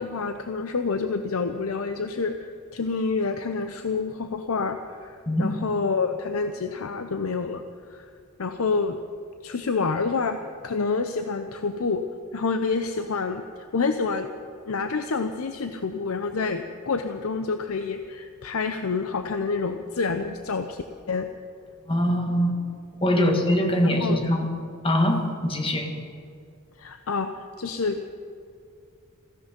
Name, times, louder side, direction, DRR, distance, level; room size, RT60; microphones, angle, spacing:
voice 1, 0.0-7.6 7.9-8.1 8.4-9.0 9.4-10.4 10.6-12.0 12.3-13.4 13.7-14.3 14.7-21.3 23.1-23.4 23.8-24.2 26.8-28.1, left 4 dB, 80° left, 7 dB, 0.7 m, -28 dB
voice 2, 5.3-5.6 21.9-22.5 23.0-24.5 24.8-25.9, equal, 25° left, 4 dB, 1.7 m, -22 dB
16.5 x 15.0 x 5.2 m, 2.4 s
head